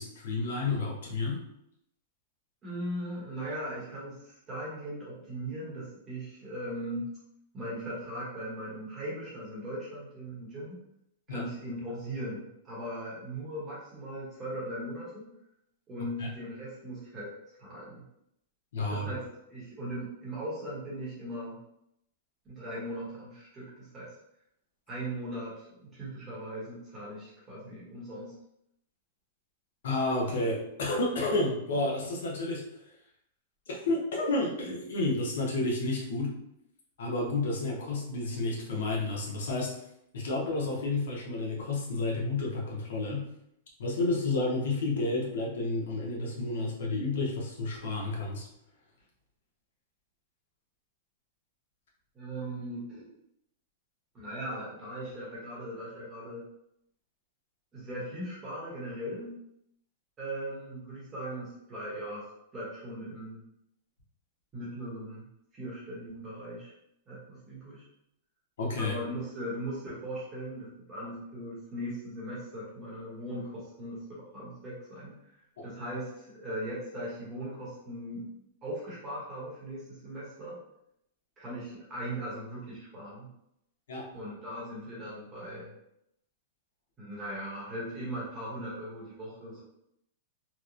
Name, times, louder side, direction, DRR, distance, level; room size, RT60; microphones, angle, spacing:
voice 1, 0.0-1.5 11.3-11.4 16.2-16.3 18.7-19.1 29.8-32.6 33.7-36.3 37.0-39.7 40.1-43.3 43.8-48.5 68.6-68.9 75.6-75.7 83.9-84.1, left 2 dB, 70° left, -2 dB, 0.7 m, -30 dB
voice 2, 2.6-7.1 7.5-10.8 11.3-15.3 15.9-17.3 17.6-18.1 18.9-21.6 22.4-24.1 24.9-28.3 52.1-53.1 54.1-56.4 57.7-59.4 60.2-62.3 62.5-63.4 64.5-65.2 65.5-66.7 67.1-67.9 68.8-75.1 75.6-78.3 78.6-80.6 81.4-83.3 84.1-85.7 87.0-89.6, right 1 dB, 15° right, -7 dB, 0.8 m, -39 dB
2.9 x 2.0 x 2.4 m, 0.78 s
supercardioid pair, 175°, 0 cm